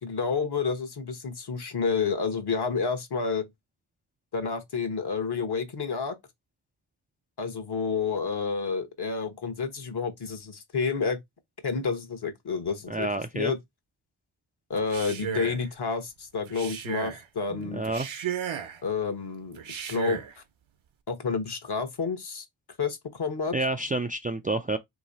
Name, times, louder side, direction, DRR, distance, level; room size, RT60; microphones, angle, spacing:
voice 1, 0.0-3.5 4.3-6.2 7.4-11.2 11.6-13.1 13.3-13.6 14.7-17.8 18.8-20.2 21.1-22.4 22.8-23.5, left 5 dB, 50° left, 1.1 m, -29 dB
voice 2, 12.9-13.5 17.5-18.1 23.5-24.8, right 2 dB, 20° right, 0.3 m, -29 dB
Male speech man speaking, 14.8-15.7 16.5-17.2 17.8-18.8 19.6-20.3, right 8 dB, 70° right, 0.8 m, -34 dB
3.0 x 2.8 x 3.9 m
cardioid pair, 55°, 49 cm